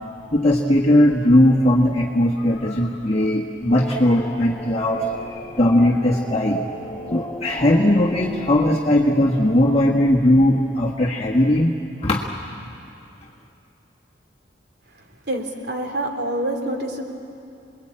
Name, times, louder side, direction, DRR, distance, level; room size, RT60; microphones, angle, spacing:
voice 1, 0.3-6.6 7.1-11.7 12.0-12.2, left 1 dB, 35° left, -3 dB, 1.5 m, -18 dB
sound 1, 3.7-8.7, left 1 dB, 15° left, 1.0 m, -35 dB
voice 2, 15.3-17.0, right 1 dB, 60° right, 3 dB, 3.2 m, -26 dB
28.5 x 21.5 x 8.8 m, 2.6 s
head